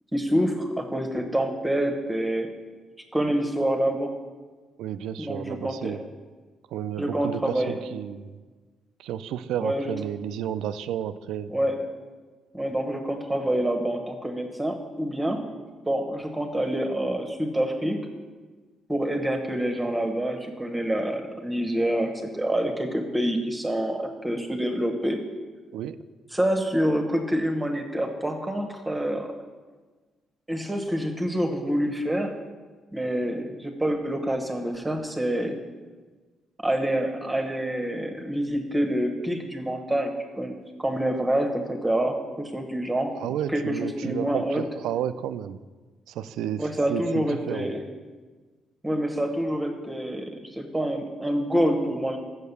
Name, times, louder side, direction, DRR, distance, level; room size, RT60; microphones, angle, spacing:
voice 1, 0.1-2.5 3.1-4.1 5.2-6.0 7.0-7.7 9.6-9.9 11.5-11.8 12.5-15.4 15.9-18.1 18.9-25.2 26.3-29.3 30.5-32.4 32.9-35.6 36.6-43.1 43.5-44.6 46.6-47.8 48.8-52.2, right 1 dB, 10° right, 3 dB, 1.0 m, -27 dB
voice 2, 4.8-6.0 6.7-8.4 9.0-11.5 25.7-26.0 43.2-45.6 46.1-46.6 46.9-47.7, right 10 dB, 85° right, 12 dB, 0.3 m, -32 dB
6.6 x 6.4 x 6.9 m, 1.4 s
cardioid pair, 90°, 0 cm